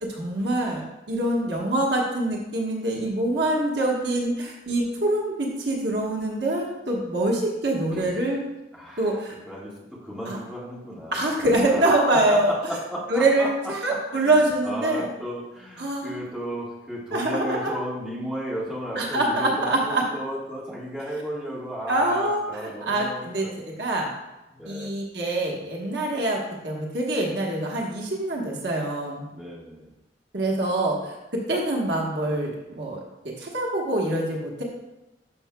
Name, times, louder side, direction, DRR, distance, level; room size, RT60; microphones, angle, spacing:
voice 1, 0.0-8.4 9.0-9.3 10.3-10.4 11.1-12.5 13.1-15.1 15.8-16.1 17.1-17.6 18.9-20.0 21.9-23.4 23.8-24.1 24.6-29.2 30.3-33.0 33.2-34.6, right 1 dB, 70° right, -1 dB, 1.3 m, -25 dB
voice 2, 8.7-11.9 12.3-13.7 14.1-23.6 24.5-24.9 29.3-29.9, equal, 5° right, -7 dB, 1.7 m, -34 dB
11.5 x 5.7 x 2.3 m, 1.0 s
head